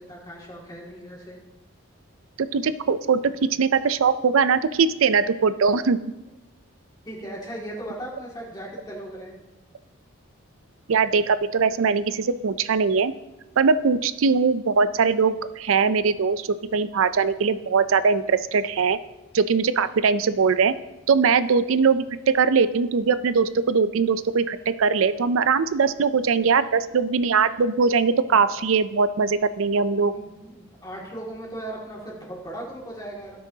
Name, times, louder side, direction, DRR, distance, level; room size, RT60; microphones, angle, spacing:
voice 1, 0.0-1.4 7.0-9.4 30.0-33.4, right 1 dB, 20° left, -4 dB, 2.3 m, -37 dB
voice 2, 2.4-3.3 3.6-6.0 10.9-13.1 13.6-19.0 19.3-20.7 21.1-22.0 22.3-30.1, right 5 dB, 75° right, 14 dB, 0.4 m, -21 dB
16.0 x 6.3 x 2.8 m, 0.99 s
head